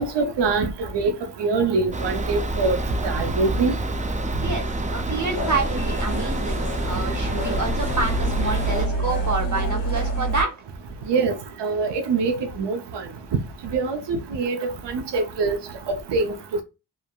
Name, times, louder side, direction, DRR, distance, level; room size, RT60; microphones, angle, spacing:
voice 1, 0.0-2.8 3.0-3.7 11.1-13.0 13.7-15.6 15.9-16.6, right 4 dB, 70° right, 0.6 m, -24 dB
sound 1, 1.9-8.9, right 1 dB, 20° right, 0.3 m, -28 dB
voice 2, 4.4-10.5, right 3 dB, 45° right, 1.0 m, -28 dB
sound 2, 5.3-10.4, right 1 dB, 80° left, 1.2 m, -27 dB
3.2 x 2.2 x 2.3 m
cardioid pair, 50°, 43 cm